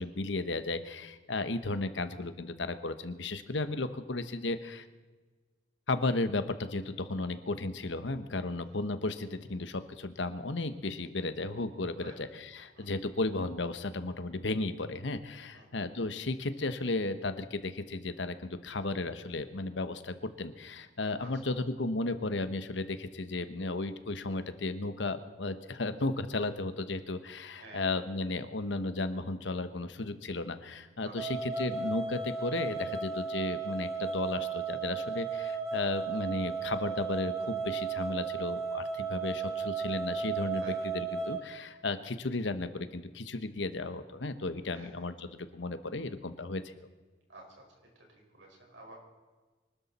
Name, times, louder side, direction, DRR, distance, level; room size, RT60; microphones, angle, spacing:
voice 1, 0.0-4.9 5.9-46.7, left 2 dB, 75° left, 11 dB, 1.1 m, -34 dB
sound 1, 31.2-41.4, right 5 dB, 20° right, 2.9 m, -35 dB
voice 2, 44.7-45.1 47.3-47.7 48.1-49.0, right 2 dB, 80° right, 0 dB, 5.2 m, -51 dB
24.0 x 13.0 x 4.2 m, 1.3 s
head